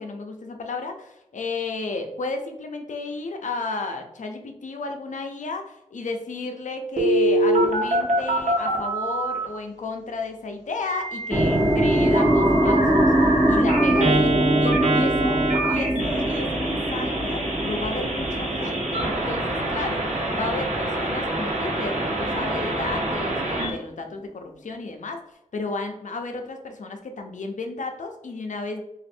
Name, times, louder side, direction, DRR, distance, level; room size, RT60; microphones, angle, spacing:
voice 1, 0.0-25.2 25.5-28.8, left 3 dB, 75° left, 4 dB, 0.6 m, -33 dB
Telephone, 7.0-9.4 10.9-23.7, right 1 dB, 70° right, 1.0 m, -25 dB
sound 1, 11.3-21.4 21.7-23.3, right 1 dB, 20° right, 0.8 m, -23 dB
3.1 x 2.5 x 4.3 m, 0.83 s
wide cardioid pair, 70°, 13 cm